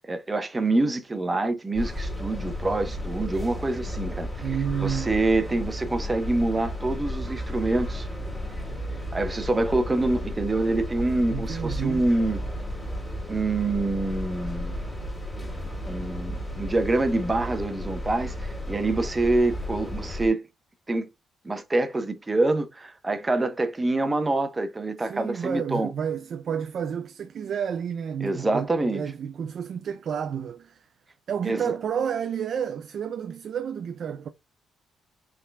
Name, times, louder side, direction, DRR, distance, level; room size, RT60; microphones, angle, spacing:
voice 1, 0.1-8.1 9.1-12.4 13.3-14.8 15.9-20.4 20.9-21.1 21.4-25.9 28.2-29.0 31.4-31.8, right 2 dB, 20° right, 0.9 m, -26 dB
sound 1, 1.7-20.3, equal, 10° left, 2.3 m, -33 dB
voice 2, 4.4-5.1 11.3-12.0 25.0-28.7 28.9-30.8 31.3-34.3, right 7 dB, 60° right, 0.4 m, -30 dB
5.7 x 3.7 x 2.2 m
cardioid pair, 90°, 0 cm